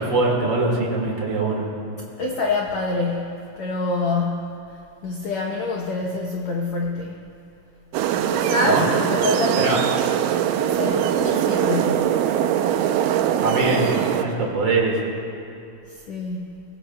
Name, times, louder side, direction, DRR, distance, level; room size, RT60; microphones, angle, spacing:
voice 1, 0.0-1.6 8.7-8.9 9.6-9.8 13.4-13.9 14.2-15.0, right 3 dB, 40° right, -2 dB, 1.9 m, -22 dB
voice 2, 2.2-7.3 8.2-9.8 10.6-12.3 15.9-16.6, left 3 dB, 90° left, -1 dB, 1.5 m, -26 dB
sound 1, 7.9-14.2, right 10 dB, 90° right, 1.9 m, -22 dB
22.0 x 18.0 x 2.2 m, 2.6 s
omnidirectional pair, 4.4 m